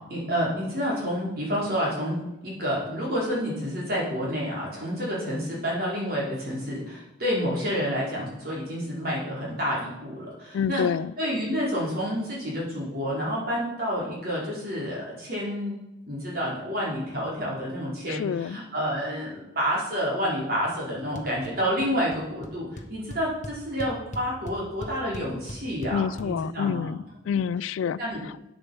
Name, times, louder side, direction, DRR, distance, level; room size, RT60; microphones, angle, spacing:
voice 1, 0.1-10.8 11.2-15.8 16.1-27.0 28.0-28.2, equal, 50° right, -5 dB, 4.6 m, -29 dB
voice 2, 10.5-11.1 18.1-18.6 25.9-27.0 27.2-28.0 28.2-28.3, left 7 dB, 90° left, 20 dB, 0.3 m, -27 dB
sound 1, 21.2-21.5 21.8-22.2 22.4-22.5 22.8-26.3, left 1 dB, 40° left, 1.1 m, -38 dB
8.6 x 8.2 x 7.2 m, 0.94 s
head